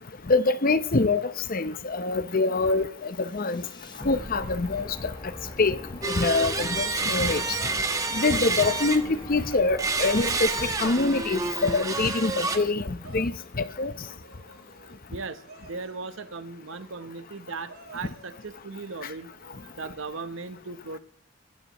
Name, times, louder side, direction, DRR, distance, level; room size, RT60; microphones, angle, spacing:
voice 1, 0.3-3.7 4.0-5.1 5.6-5.8 6.0-7.4 8.1-13.9, left 3 dB, 40° left, 0.8 m, -25 dB
sound 1, 3.1-13.3, left 1 dB, 20° left, 1.4 m, -43 dB
sound 2, 6.0-9.3 9.8-12.6, right 3 dB, 15° right, 1.1 m, -29 dB
sound 3, 6.6-7.6 8.2-9.7 10.2-10.6 11.1-11.5 11.9-12.4 13.0-13.6 14.0-15.0 15.4-16.0 16.6-17.3 17.6-18.7 19.3-19.7, right 3 dB, 90° right, 5.5 m, -51 dB
voice 2, 15.1-19.3 19.7-21.0, right 4 dB, 60° right, 0.9 m, -38 dB
23.5 x 14.5 x 3.1 m
head